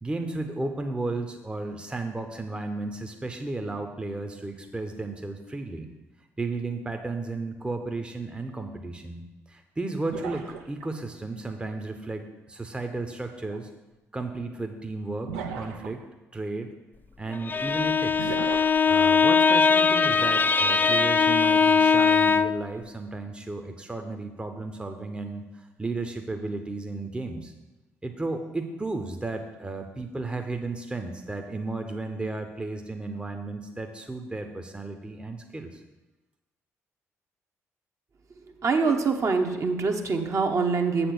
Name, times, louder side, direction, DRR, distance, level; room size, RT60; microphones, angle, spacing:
voice 1, 0.0-5.9 6.4-13.7 14.1-16.0 16.3-16.7 17.2-18.4 18.9-27.5 28.0-35.8, right 3 dB, 15° right, 5 dB, 0.8 m, -34 dB
sound 1, 10.1-11.0 13.4-13.6 15.3-16.0 18.2-18.8, right 7 dB, 70° right, 0.6 m, -36 dB
Bowed string instrument, 17.3-22.7, left 5 dB, 25° left, 0.3 m, -21 dB
voice 2, 38.6-41.1, right 4 dB, 40° right, 3 dB, 0.9 m, -24 dB
7.5 x 4.3 x 6.9 m, 1.1 s
figure-of-eight pair, 45°, 8 cm